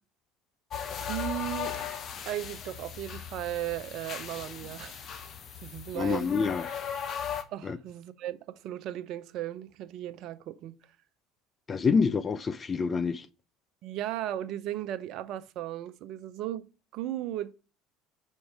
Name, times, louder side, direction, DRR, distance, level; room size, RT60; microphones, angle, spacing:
sound 1, 0.7-7.4, left 8 dB, 45° left, 0.9 m, -37 dB
voice 1, 1.1-1.8 2.3-5.1 5.6-6.4 7.5-10.8 13.8-16.7 16.9-17.5, right 13 dB, 55° right, 0.5 m, -36 dB
voice 2, 5.9-6.6 7.6-7.8 11.7-13.3, left 5 dB, 30° left, 0.4 m, -27 dB
5.3 x 4.5 x 4.8 m
hypercardioid pair, 65°, 0 cm